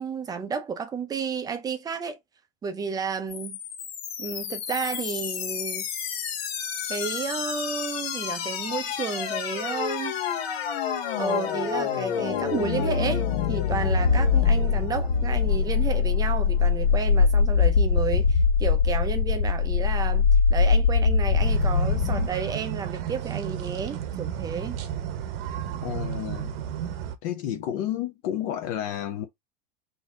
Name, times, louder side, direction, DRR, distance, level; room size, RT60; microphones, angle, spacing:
voice 1, 0.0-2.2 2.6-3.6 4.2-5.9 6.9-10.2 11.2-24.8, right 5 dB, 15° right, 0.5 m, -32 dB
sound 1, 3.3-22.3, left 5 dB, 85° left, 1.6 m, -24 dB
sound 2, 21.4-27.2, right 10 dB, 70° right, 1.0 m, -33 dB
voice 2, 25.8-26.6 27.2-29.3, left 11 dB, 60° left, 0.8 m, -31 dB
4.1 x 2.7 x 3.6 m
supercardioid pair, 155°, 30 cm